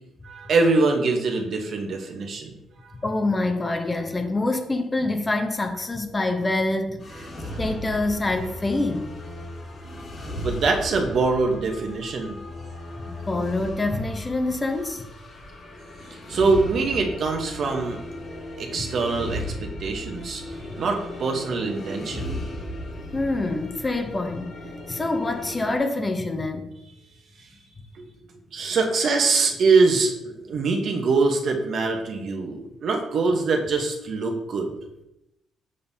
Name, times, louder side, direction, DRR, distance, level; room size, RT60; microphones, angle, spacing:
voice 1, 0.2-2.5 2.8-2.9 7.4-7.6 10.4-12.4 16.3-18.0 18.6-22.3 28.0-28.1 28.5-34.7, right 3 dB, 60° right, 3 dB, 1.0 m, -23 dB
voice 2, 3.0-7.3 7.6-9.2 13.1-15.1 23.1-24.6 24.9-26.7, left 2 dB, 25° left, 6 dB, 0.8 m, -26 dB
sound 1, 7.0-25.8, left 1 dB, 50° left, 1.9 m, -36 dB
6.6 x 5.3 x 2.8 m, 0.88 s
cardioid pair, 90°, 0 cm